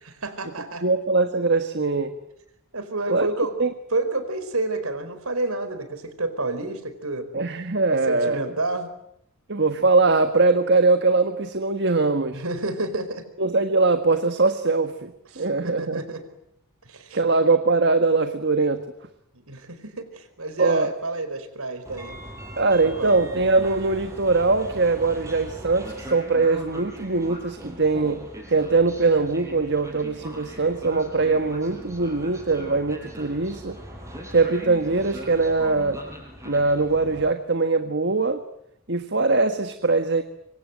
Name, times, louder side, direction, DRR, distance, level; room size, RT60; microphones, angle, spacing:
voice 1, 0.0-0.9 2.7-3.6 3.9-7.3 7.9-8.9 12.3-13.2 15.3-16.2 16.8-17.2 19.3-22.2 22.8-23.2, right 2 dB, 70° right, 10 dB, 4.7 m, -29 dB
voice 2, 0.8-2.1 3.1-3.3 3.6-3.7 7.3-8.4 9.5-12.4 13.4-16.0 17.1-18.8 20.6-20.9 22.6-28.2 28.5-33.8 34.3-36.0 36.4-38.4 38.9-40.2, right 3 dB, 50° right, 8 dB, 1.6 m, -21 dB
Train, 21.8-37.3, equal, 15° right, 5.8 m, -40 dB
26.5 x 25.0 x 9.2 m, 0.76 s
head